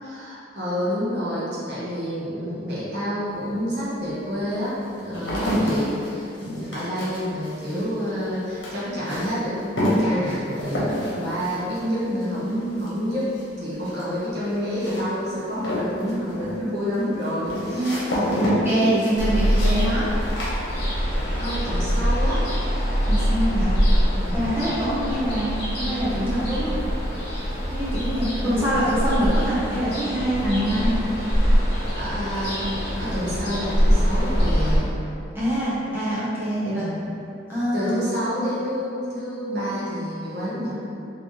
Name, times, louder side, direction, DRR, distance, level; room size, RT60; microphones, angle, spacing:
voice 1, 0.0-18.2 21.4-22.5 24.2-24.6 28.4-29.0 31.9-32.7 33.0-35.0 36.7-37.1 37.7-40.7, equal, 65° right, -9 dB, 1.0 m, -28 dB
sound 1, 3.3-3.4 4.1-21.3 21.5-22.1, equal, 85° left, 1.0 m, -29 dB
voice 2, 17.7-20.1 23.1-23.7 24.3-26.8 27.7-30.9 35.3-36.8 37.5-38.0, right 1 dB, 10° right, -10 dB, 0.9 m, -25 dB
Ocean, 19.2-34.8, equal, 60° left, 1.1 m, -23 dB
3.6 x 2.9 x 3.1 m, 2.7 s
head